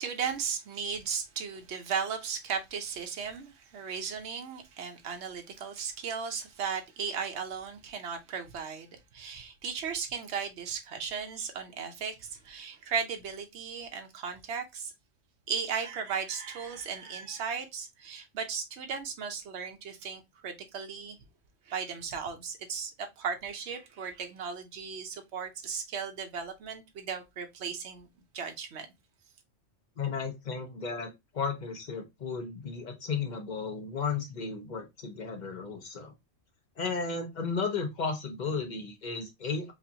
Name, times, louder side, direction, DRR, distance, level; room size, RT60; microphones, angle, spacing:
voice 1, 0.0-14.9 15.5-21.2 21.7-28.1 28.3-28.9, right 6 dB, 65° right, 1.0 m, -36 dB
voice 2, 30.0-36.1 36.8-39.7, left 5 dB, 40° left, 0.9 m, -34 dB
4.7 x 2.5 x 2.8 m
omnidirectional pair, 1.3 m